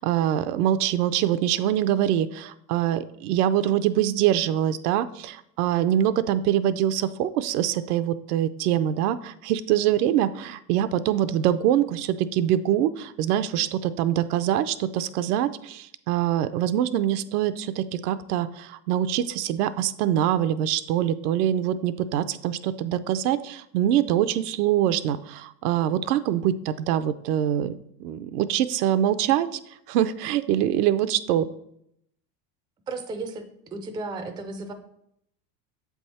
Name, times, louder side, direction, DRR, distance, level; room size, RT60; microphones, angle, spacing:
voice 1, 0.0-27.7 28.0-29.6 29.9-31.5, right 11 dB, 70° right, 12 dB, 0.6 m, -24 dB
voice 2, 32.9-33.4 33.7-34.7, right 3 dB, 10° right, 6 dB, 0.4 m, -33 dB
7.4 x 3.5 x 4.1 m, 0.74 s
hypercardioid pair, 95°, 48 cm